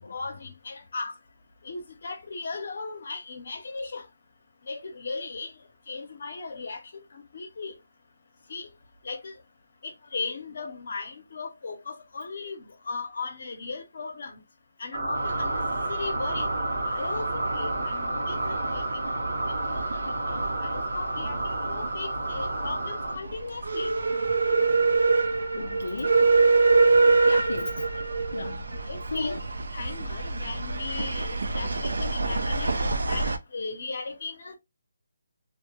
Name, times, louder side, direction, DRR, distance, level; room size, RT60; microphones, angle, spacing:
voice 1, 0.1-1.1 1.6-4.0 4.6-5.5 5.9-6.8 7.1-7.7 8.5-8.7 9.0-9.3 9.8-14.4 14.8-15.6 15.9-16.5 16.8-19.1 19.5-23.9 27.2-27.4 28.9-29.4 29.7-34.6, left 4 dB, 45° left, 0.7 m, -37 dB
sound 1, 14.9-23.2, right 2 dB, 55° right, 0.9 m, -30 dB
sound 2, 15.2-33.4, right 3 dB, 75° right, 0.4 m, -26 dB
voice 2, 25.6-26.3 27.5-27.7 28.3-28.7 29.1-29.4, left 3 dB, 85° left, 0.3 m, -34 dB
2.1 x 2.1 x 3.0 m
hypercardioid pair, 175°, 0 cm